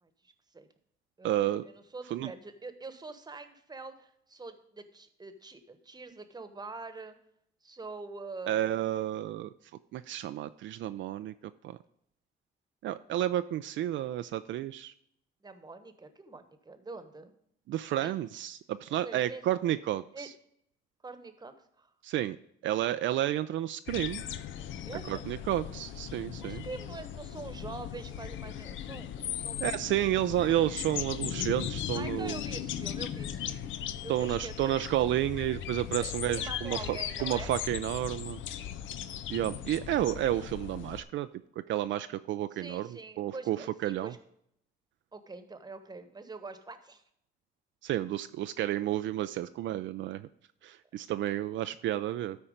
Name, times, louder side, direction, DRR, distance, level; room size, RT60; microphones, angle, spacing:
voice 1, 0.0-0.7 1.2-7.1 7.6-8.6 15.4-17.3 17.9-18.2 18.9-19.5 20.1-20.3 21.0-21.9 24.8-25.3 26.4-29.6 31.9-33.6 34.0-34.8 35.9-37.5 42.5-44.2 45.1-47.0, right 3 dB, 20° right, 10 dB, 1.1 m, -45 dB
voice 2, 1.2-1.6 2.1-2.3 8.5-9.5 9.9-11.3 11.6-11.8 12.8-14.9 17.7-20.3 22.0-22.4 22.6-24.2 25.1-26.6 29.6-32.4 34.1-38.4 39.3-41.3 41.7-44.1 47.8-50.3 50.6-52.4, right 13 dB, 70° right, 11 dB, 0.4 m, -31 dB
sound 1, 23.9-41.0, left 10 dB, 75° left, 0.6 m, -38 dB
12.5 x 4.4 x 5.1 m, 0.72 s
cardioid pair, 90°, 20 cm